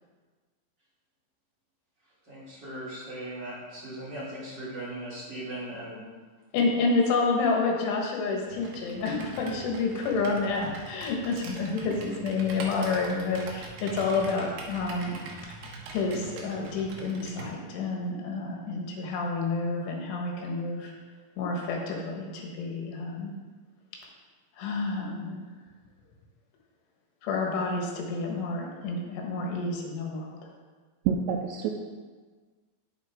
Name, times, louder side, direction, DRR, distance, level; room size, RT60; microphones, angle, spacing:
voice 1, 2.2-6.0, right 1 dB, 25° right, -10 dB, 2.9 m, -38 dB
voice 2, 6.5-15.2 15.9-20.9 21.4-23.4 24.6-25.4 27.2-30.4, left 3 dB, 80° left, 0 dB, 3.9 m, -29 dB
Computer keyboard, 8.5-17.5, right 3 dB, 70° right, 2.8 m, -43 dB
voice 3, 31.1-31.7, right 7 dB, 85° right, 2 dB, 2.6 m, -27 dB
9.7 x 8.9 x 3.6 m, 1.4 s
omnidirectional pair, 5.5 m